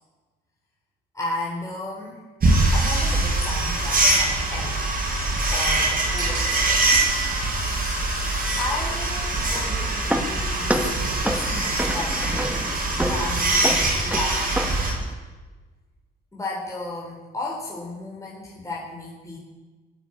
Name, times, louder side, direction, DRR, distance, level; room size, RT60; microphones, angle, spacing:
voice 1, 1.1-2.2 2.7-4.9 5.5-6.9 8.6-12.7 13.1-14.9 16.3-19.4, left 2 dB, 15° left, -3 dB, 3.8 m, -34 dB
sound 1, 2.4-14.9, right 2 dB, 50° right, 5.5 m, -23 dB
sound 2, 9.3-15.1, right 1 dB, 5° right, 1.7 m, -30 dB
17.0 x 9.5 x 8.9 m, 1.3 s
cardioid pair, 90°, 20 cm